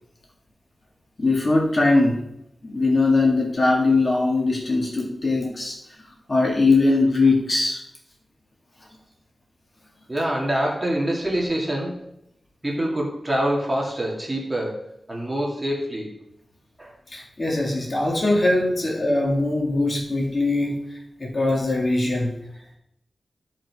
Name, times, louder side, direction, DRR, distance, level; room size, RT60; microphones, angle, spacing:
voice 1, 1.2-2.3 2.6-5.8 6.3-7.8 17.1-20.8 21.2-22.3, left 2 dB, 40° left, -1 dB, 2.0 m, -21 dB
voice 2, 10.1-12.0 12.6-16.1 16.8-16.9, right 1 dB, 20° right, -2 dB, 2.3 m, -25 dB
13.5 x 5.2 x 4.8 m, 0.78 s
wide cardioid pair, 130°, 0 cm